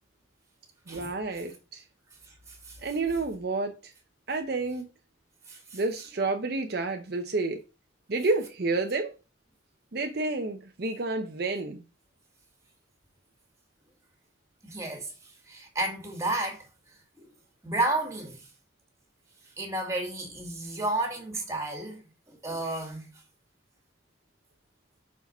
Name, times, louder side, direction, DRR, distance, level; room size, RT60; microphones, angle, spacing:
voice 1, 0.9-1.8 2.8-3.9 4.3-4.9 5.7-7.6 8.1-9.2 9.9-11.8, right 3 dB, 55° right, 0.7 m, -30 dB
voice 2, 2.3-2.8 5.5-5.8 14.6-15.1 15.5-16.7 17.2-17.3 17.6-18.5 19.6-22.0 22.3-23.1, right 2 dB, 15° right, 2.1 m, -32 dB
5.8 x 4.9 x 5.3 m
head